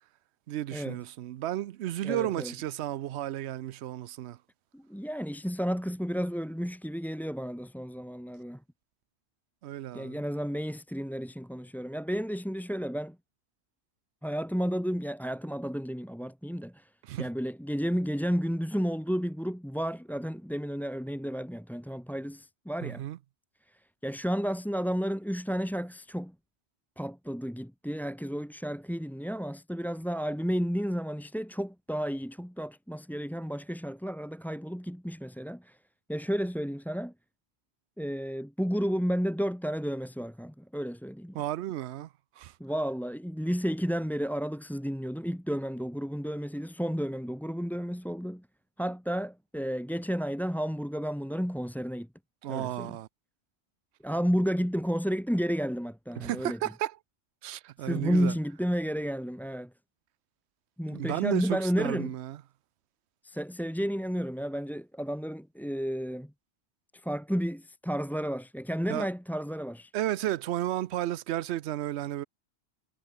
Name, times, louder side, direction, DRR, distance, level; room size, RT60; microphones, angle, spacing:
voice 1, 0.5-4.4 9.6-10.2 17.1-17.3 22.8-23.2 41.3-42.1 42.4-42.5 52.4-53.1 56.2-57.0 57.4-58.3 60.9-62.4 68.9-69.1 69.9-72.3, right 13 dB, 75° right, 0.9 m, -33 dB
voice 2, 2.0-2.5 4.7-8.6 9.9-13.2 14.2-16.9 17.2-23.0 23.7-26.3 27.0-35.8 36.1-37.1 38.0-41.4 42.6-48.5 48.8-52.1 52.5-53.0 54.0-56.6 57.8-59.7 60.8-62.1 63.2-66.3 66.9-69.9, equal, ahead, 2.0 m, -32 dB
omnidirectional pair, 1.2 m